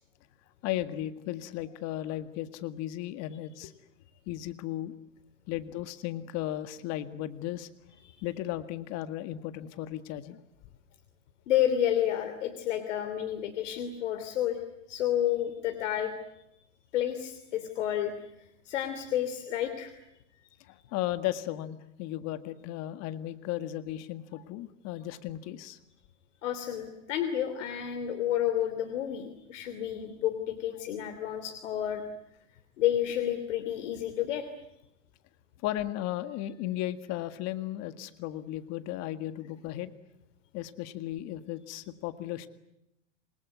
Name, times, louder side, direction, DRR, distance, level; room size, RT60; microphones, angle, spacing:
voice 1, 0.6-3.7 4.3-4.9 5.5-7.7 8.2-10.4 20.6-25.8 35.6-39.9 40.5-42.5, left 13 dB, 45° left, 11 dB, 1.9 m, -35 dB
voice 2, 11.5-14.6 14.9-16.1 16.9-18.3 18.6-19.9 26.4-32.1 32.8-34.5, left 11 dB, 75° left, 7 dB, 3.1 m, -30 dB
27.5 x 21.0 x 9.4 m, 0.86 s
supercardioid pair, 130°, 36 cm